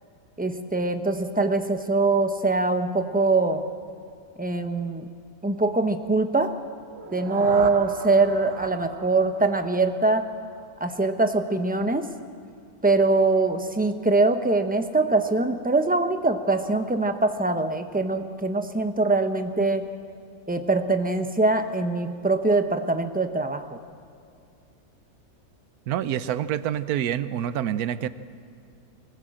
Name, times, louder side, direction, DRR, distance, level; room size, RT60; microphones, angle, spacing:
voice 1, 0.4-3.7 4.4-5.1 5.4-6.6 7.1-10.3 10.8-12.1 12.8-19.9 20.5-23.8, right 3 dB, 10° right, 7 dB, 0.6 m, -23 dB
sound 1, 6.8-10.8, right 6 dB, 50° right, 0.9 m, -38 dB
voice 2, 25.9-28.1, right 10 dB, 75° right, 14 dB, 1.2 m, -27 dB
24.0 x 16.0 x 7.7 m, 2.4 s
omnidirectional pair, 1.6 m